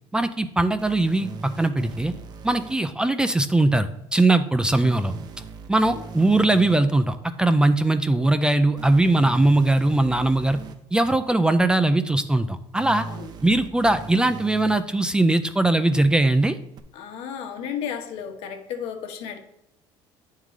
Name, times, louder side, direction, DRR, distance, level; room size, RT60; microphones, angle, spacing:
voice 1, 0.1-2.1 2.4-5.1 5.7-10.6 10.9-13.1 13.4-16.6, right 2 dB, 10° right, 0.4 m, -20 dB
sound 1, 0.8-2.7 4.8-6.8 8.8-10.7 12.8-14.8 16.8-16.9, right 4 dB, 45° right, 0.7 m, -38 dB
voice 2, 16.9-19.4, left 8 dB, 75° left, 1.1 m, -34 dB
9.1 x 3.7 x 4.8 m
cardioid pair, 130°, 10 cm